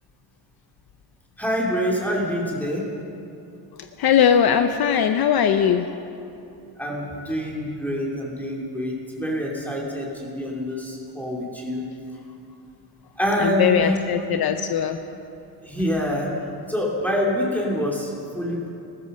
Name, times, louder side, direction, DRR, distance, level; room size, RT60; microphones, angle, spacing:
voice 1, 1.4-2.9 6.8-11.8 13.2-13.9 15.6-16.3 16.7-18.7, equal, 5° left, -3 dB, 2.7 m, -26 dB
voice 2, 4.0-6.0 13.4-15.0, left 8 dB, 55° left, 8 dB, 0.8 m, -20 dB
15.0 x 14.0 x 6.6 m, 2.7 s
cardioid pair, 120°, 45 cm